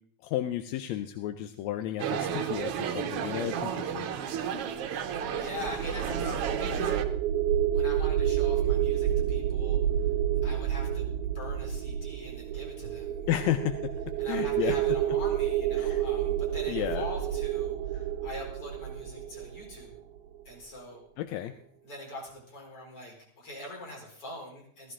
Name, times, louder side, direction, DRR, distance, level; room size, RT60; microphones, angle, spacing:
voice 1, 0.2-4.1 13.3-13.9 14.3-14.7 15.8-16.0 16.7-17.0 21.2-21.5, left 12 dB, 75° left, 10 dB, 1.8 m, -32 dB
sound 1, 2.0-7.0, right 8 dB, 65° right, 1.6 m, -32 dB
sound 2, 5.1-20.2, right 10 dB, 85° right, 2.2 m, -29 dB
voice 2, 5.3-7.1 7.7-9.8 10.4-13.6 14.2-20.0 20.4-21.0 21.8-24.9, left 1 dB, 45° left, 0 dB, 5.0 m, -43 dB
15.5 x 14.0 x 3.7 m, 0.64 s
omnidirectional pair, 3.4 m